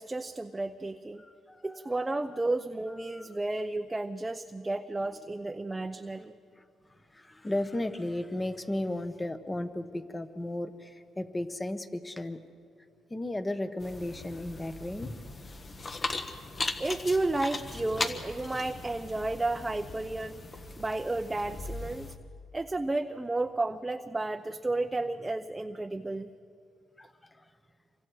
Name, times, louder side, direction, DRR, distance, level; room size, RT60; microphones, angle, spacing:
voice 1, 0.0-1.2 1.6-6.3 16.1-16.3 16.8-20.4 20.8-22.1 22.5-26.3, right 2 dB, 15° right, 6 dB, 0.7 m, -32 dB
voice 2, 1.2-1.8 2.1-2.2 3.0-3.3 5.8-5.9 6.6-6.7 7.1-12.4 13.1-15.1 27.0-27.4, left 1 dB, 15° left, 10 dB, 1.2 m, -35 dB
sound 1, 13.8-22.2, left 3 dB, 35° left, 1.4 m, -38 dB
27.5 x 24.0 x 4.8 m, 2.3 s
cardioid pair, 90°, 0 cm